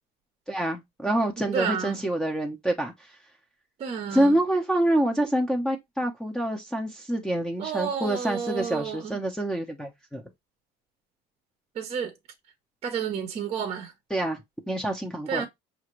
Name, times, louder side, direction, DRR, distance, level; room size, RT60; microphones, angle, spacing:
voice 1, 0.5-3.1 4.1-10.2 14.1-15.5, right 1 dB, 5° left, 0.7 m, -27 dB
voice 2, 1.5-2.0 3.8-4.3 7.6-9.2 11.8-12.1 12.8-13.9 15.3-15.5, right 7 dB, 35° right, 0.7 m, -31 dB
5.4 x 2.5 x 3.0 m
cardioid pair, 130°, 18 cm